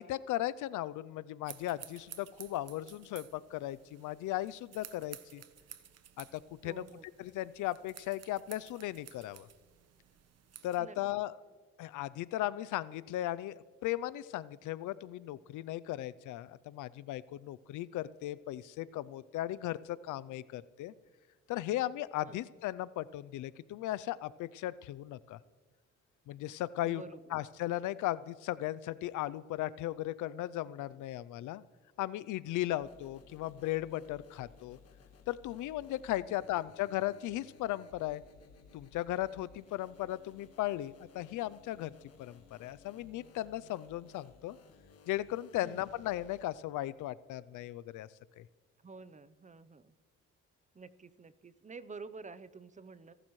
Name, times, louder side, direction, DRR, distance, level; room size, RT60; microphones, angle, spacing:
voice 1, 0.0-5.4 6.2-6.8 7.2-9.5 10.6-11.4 11.8-20.9 21.5-25.4 26.3-27.0 27.3-31.6 32.0-34.8 35.3-38.2 38.7-41.9 42.2-44.6 45.1-48.1 48.4-48.5, left 14 dB, 80° left, 17 dB, 0.5 m, -37 dB
sound 1, 1.4-10.8, right 9 dB, 55° right, 1.0 m, -54 dB
voice 2, 6.6-7.1 10.8-11.0 22.2-22.4 26.8-27.4 32.8-32.9 45.6-45.8 48.8-49.9 50.7-53.1, right 4 dB, 25° right, 15 dB, 0.7 m, -49 dB
sound 2, 32.8-46.4, left 5 dB, 55° left, 1.6 m, -59 dB
25.5 x 12.0 x 3.1 m, 1.5 s
cardioid pair, 90°, 30 cm